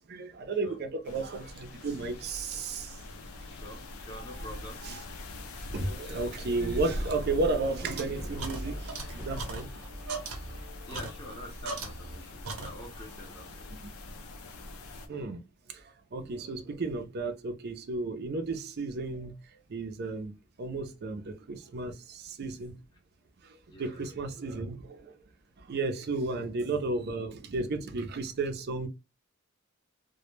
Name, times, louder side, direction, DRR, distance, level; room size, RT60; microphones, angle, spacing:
voice 1, 0.0-3.0 4.8-5.0 5.7-9.7 15.1-15.4 15.7-15.8 16.1-19.4 19.7-22.7 23.4-25.1 25.6-28.9, right 3 dB, 50° right, 0.4 m, -33 dB
sound 1, 1.0-15.1, left 1 dB, 85° left, 0.5 m, -42 dB
voice 2, 3.5-4.8 10.9-13.8 23.7-24.1 26.3-26.4, left 1 dB, 20° left, 0.6 m, -46 dB
sound 2, 7.0-12.2 12.4-13.1, right 3 dB, 85° right, 0.7 m, -41 dB
Brass instrument, 8.0-12.3, equal, 10° right, 0.8 m, -44 dB
2.1 x 2.0 x 3.0 m
head